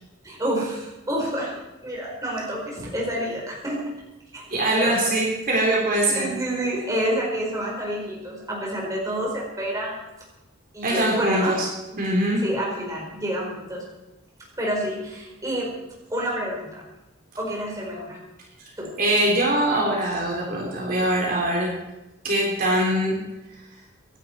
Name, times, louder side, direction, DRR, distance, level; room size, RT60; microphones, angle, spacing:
voice 1, 0.2-3.8 4.3-4.4 4.8-5.0 6.1-10.0 10.7-11.6 11.9-12.0 12.4-13.8 14.6-15.7 16.1-16.8 17.4-18.2 18.8-18.9, equal, 15° right, -3 dB, 4.6 m, -28 dB
voice 2, 4.5-6.3 10.8-11.7 12.0-12.4 19.0-21.7 22.2-23.2, right 1 dB, 40° right, -2 dB, 3.9 m, -22 dB
26.0 x 11.5 x 4.6 m, 1.0 s
head